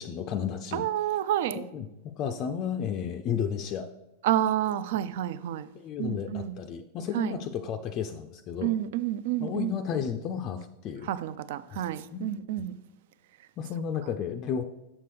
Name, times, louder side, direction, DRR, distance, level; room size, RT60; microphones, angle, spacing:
voice 1, 0.0-0.9 1.5-1.9 2.2-3.9 5.7-8.7 9.4-11.1 11.7-11.8 12.1-12.2 13.6-14.6, left 8 dB, 35° left, 6 dB, 0.4 m, -32 dB
voice 2, 0.7-1.6 4.2-5.7 6.0-6.5 7.1-7.4 8.6-9.7 11.1-12.7, right 12 dB, 55° right, 15 dB, 0.3 m, -29 dB
7.2 x 6.6 x 3.2 m, 0.95 s
figure-of-eight pair, 90°, 0 cm